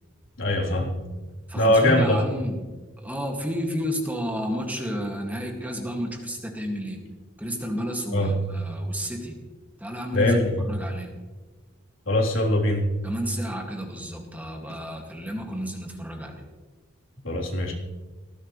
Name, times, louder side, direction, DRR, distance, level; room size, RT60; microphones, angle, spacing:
voice 1, 0.4-1.0 1.5-2.2 8.1-8.4 10.1-10.6 12.1-12.9 17.2-17.7, left 1 dB, 80° left, -2 dB, 3.6 m, -22 dB
voice 2, 1.5-2.7 3.0-7.0 7.4-9.3 9.8-11.2 13.0-16.4, equal, 10° right, 1 dB, 2.1 m, -31 dB
19.0 x 16.0 x 3.3 m, 1.3 s
head